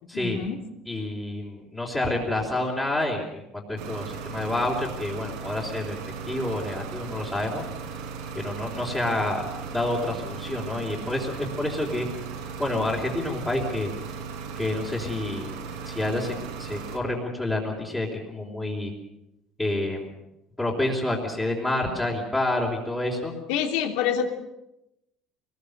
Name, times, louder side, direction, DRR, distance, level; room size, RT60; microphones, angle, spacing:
voice 1, 0.0-0.6 23.5-24.3, left 8 dB, 85° left, 5 dB, 3.0 m, -27 dB
voice 2, 0.9-6.0 6.3-7.6 8.4-9.4 9.7-12.1 12.6-13.9 14.6-15.5 15.9-18.9 19.6-20.1 20.6-23.3, left 1 dB, 10° left, -6 dB, 3.6 m, -28 dB
sound 1, 3.8-17.0, right 6 dB, 85° right, 4.3 m, -37 dB
24.5 x 20.0 x 6.7 m, 0.87 s
cardioid pair, 155°, 0 cm